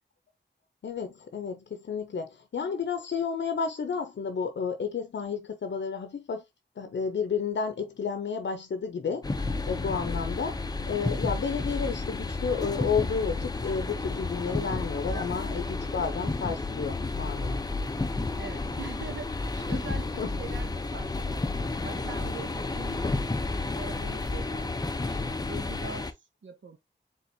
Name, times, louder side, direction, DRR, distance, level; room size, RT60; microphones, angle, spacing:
voice 1, 0.8-6.4 6.8-17.6 18.0-18.1 20.2-20.3, left 6 dB, 70° left, 0.6 m, -31 dB
sound 1, 9.2-26.1, left 3 dB, 20° left, 0.5 m, -31 dB
voice 2, 18.3-23.1 23.7-26.2 26.4-26.8, right 4 dB, 80° right, 0.8 m, -43 dB
4.3 x 3.8 x 2.6 m
wide cardioid pair, 115°, 19 cm